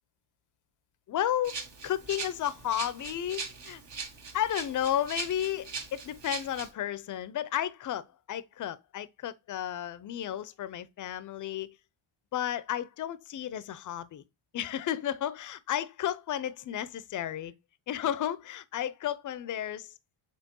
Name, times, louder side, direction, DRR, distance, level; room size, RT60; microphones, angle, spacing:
voice 1, 1.1-3.8 4.3-11.8 12.3-14.2 14.5-17.5 17.9-19.9, left 11 dB, 40° left, 0.5 m, -33 dB
Rattle (instrument), 1.4-6.7, right 5 dB, 55° right, 1.2 m, -40 dB
4.4 x 3.5 x 2.9 m
supercardioid pair, 55°, 50 cm